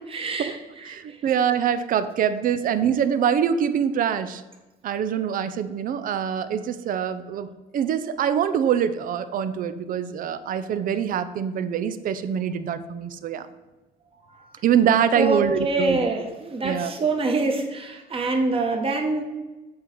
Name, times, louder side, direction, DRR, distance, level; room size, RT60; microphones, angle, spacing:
voice 1, 0.1-1.2 14.3-14.5 15.1-19.2, right 3 dB, 35° right, 4 dB, 1.4 m, -25 dB
voice 2, 0.9-4.4 4.8-13.5 14.6-16.0 16.6-16.9, right 8 dB, 55° right, 12 dB, 0.6 m, -24 dB
7.6 x 3.9 x 6.0 m, 1.1 s
cardioid pair, 110°, 17 cm